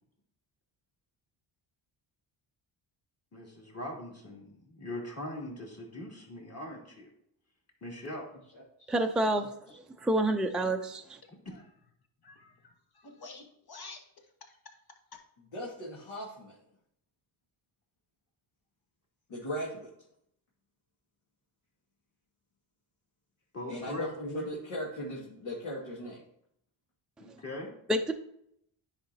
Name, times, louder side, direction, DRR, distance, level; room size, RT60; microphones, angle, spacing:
voice 1, 3.3-7.1 7.8-8.2 11.4-11.6 23.5-24.1 27.2-27.7, left 1 dB, 30° left, -2 dB, 2.8 m, -41 dB
voice 2, 8.9-9.5 10.0-11.2 27.9-28.1, right 1 dB, ahead, 3 dB, 0.5 m, -28 dB
voice 3, 12.2-14.8 15.1-15.2, left 3 dB, 45° left, 3 dB, 1.5 m, -50 dB
voice 4, 15.5-16.6 19.3-19.9 23.7-26.2, equal, 70° left, -6 dB, 2.1 m, -37 dB
10.0 x 4.9 x 2.8 m, 0.73 s
cardioid pair, 70°, 49 cm